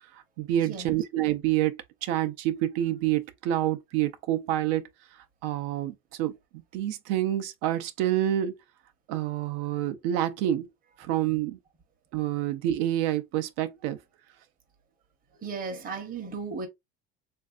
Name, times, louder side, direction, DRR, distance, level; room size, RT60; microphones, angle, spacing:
voice 1, 0.1-4.9 5.4-8.6 9.1-10.7 11.0-11.6 12.1-14.0, right 12 dB, 90° right, 0.6 m, -28 dB
voice 2, 15.3-16.7, right 4 dB, 25° right, 0.7 m, -35 dB
3.3 x 2.6 x 2.4 m
cardioid pair, 150°, 34 cm